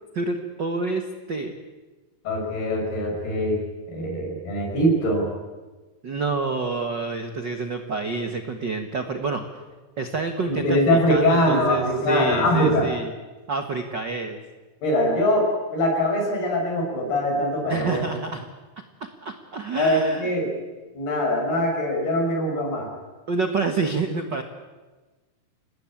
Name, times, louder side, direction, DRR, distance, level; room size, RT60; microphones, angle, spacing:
voice 1, 0.1-1.5 6.0-9.5 10.0-13.1 13.5-14.4 17.7-18.5 19.2-20.3 23.3-24.4, right 3 dB, 60° right, 6 dB, 1.1 m, -27 dB
voice 2, 2.2-3.6 3.9-5.3 10.5-12.9 14.8-18.0 19.8-20.5 20.9-22.9, left 1 dB, 80° left, 1 dB, 8.0 m, -22 dB
27.0 x 19.5 x 8.9 m, 1.2 s
omnidirectional pair, 4.5 m